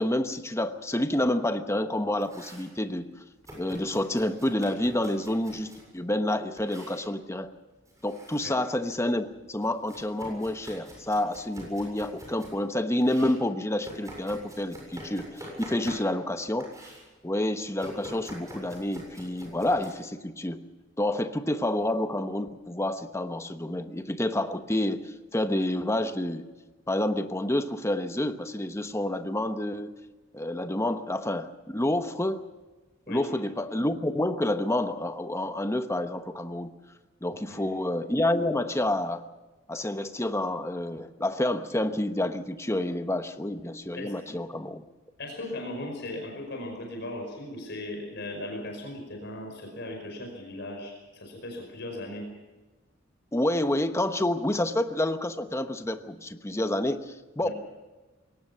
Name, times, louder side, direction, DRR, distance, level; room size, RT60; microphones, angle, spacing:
voice 1, 0.0-3.1 3.6-7.5 8.0-16.7 17.2-20.6 21.0-26.4 26.9-29.9 30.3-32.4 33.1-36.7 37.2-39.2 39.7-44.8 53.3-57.5, left 1 dB, 15° left, 8 dB, 1.1 m, -28 dB
Domestic sounds home sounds, 2.0-2.7 3.4-5.9 6.6-7.0 7.8-8.5 8.9-12.6 13.0-16.3 16.6-17.0 17.8-19.9, equal, 15° right, 7.4 m, -46 dB
voice 2, 45.2-52.3 57.4-57.5, left 1 dB, 60° left, 2 dB, 5.2 m, -37 dB
22.0 x 18.5 x 6.9 m, 1.2 s
head